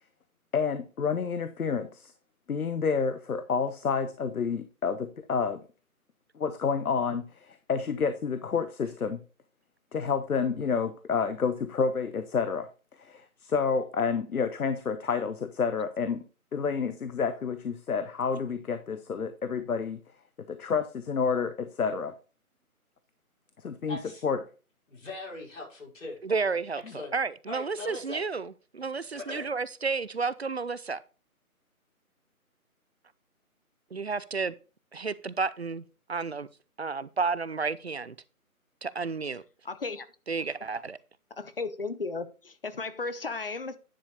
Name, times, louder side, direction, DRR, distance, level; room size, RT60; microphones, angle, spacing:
voice 1, 0.5-2.1 2.5-5.6 6.3-9.2 9.9-12.7 13.0-16.2 16.5-20.0 20.4-22.1 23.6-24.4, left 5 dB, 80° left, 1.0 m, -29 dB
voice 2, 23.9-24.2 24.9-26.2 26.9-27.1 27.5-28.2 29.1-29.5, left 2 dB, 60° left, 5.4 m, -40 dB
voice 3, 26.2-31.0 33.9-34.5 34.9-36.5 36.8-38.2 38.8-39.4 40.3-41.0, right 4 dB, 50° right, 0.4 m, -31 dB
voice 4, 39.6-40.1 41.3-43.8, left 3 dB, 40° left, 0.7 m, -35 dB
10.5 x 5.0 x 4.0 m
figure-of-eight pair, 160°, 44 cm